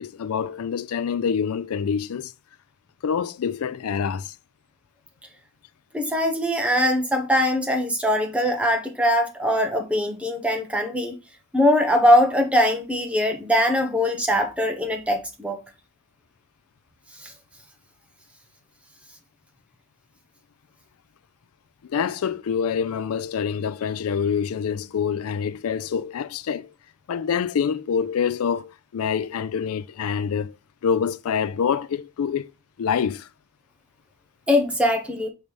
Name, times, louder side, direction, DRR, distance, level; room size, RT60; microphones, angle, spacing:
voice 1, 0.0-2.3 3.0-4.4 21.8-26.7 27.1-30.6 30.8-32.5 32.8-33.3, left 7 dB, 80° left, 0.4 m, -26 dB
voice 2, 5.9-11.1 11.5-15.6 17.2-17.3 34.5-35.3, equal, 5° right, 1.0 m, -21 dB
6.5 x 3.2 x 5.3 m
head